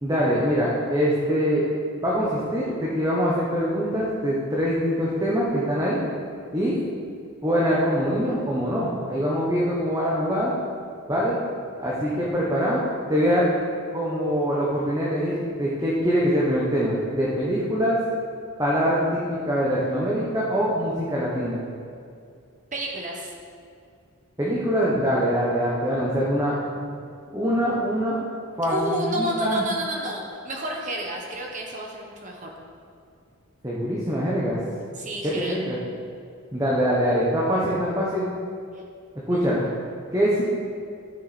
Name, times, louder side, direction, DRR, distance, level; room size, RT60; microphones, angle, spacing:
voice 1, 0.0-1.7 2.0-6.0 6.5-6.8 7.4-10.5 11.1-11.4 11.8-12.8 13.1-13.5 13.9-18.0 18.6-21.6 24.4-26.6 27.3-28.2 28.6-29.7 33.6-34.6 35.2-35.8 36.5-38.3 39.3-39.6 40.1-40.4, equal, 15° right, -6 dB, 1.1 m, -23 dB
voice 2, 22.7-23.3 28.7-32.5 35.0-35.6 38.7-38.8 39.3-39.4, right 1 dB, 35° right, 0 dB, 1.3 m, -31 dB
12.5 x 6.4 x 4.3 m, 2.3 s
head